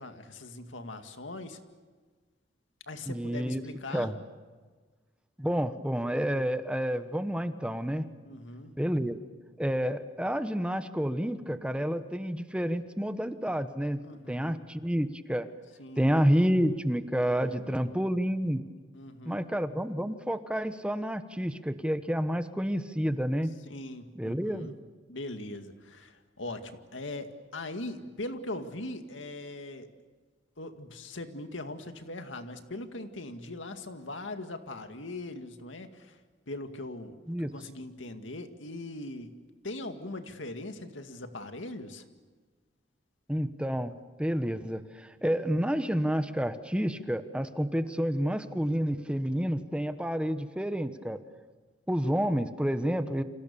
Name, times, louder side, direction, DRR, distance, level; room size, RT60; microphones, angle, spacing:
voice 1, 0.0-1.6 2.9-4.1 8.2-8.7 14.0-14.6 15.8-16.1 17.4-17.9 18.9-19.5 23.7-24.8 25.1-29.9 30.6-36.2 36.5-39.3 39.6-42.0, left 2 dB, 90° left, 7 dB, 2.1 m, -40 dB
voice 2, 3.1-3.6 3.9-4.2 5.4-8.0 8.8-9.2 9.6-15.5 16.0-18.6 19.2-23.5 24.2-24.7 37.3-37.5 43.3-43.9 44.2-51.2 51.9-53.2, equal, 5° right, 10 dB, 1.1 m, -29 dB
29.5 x 26.5 x 7.0 m, 1.4 s
head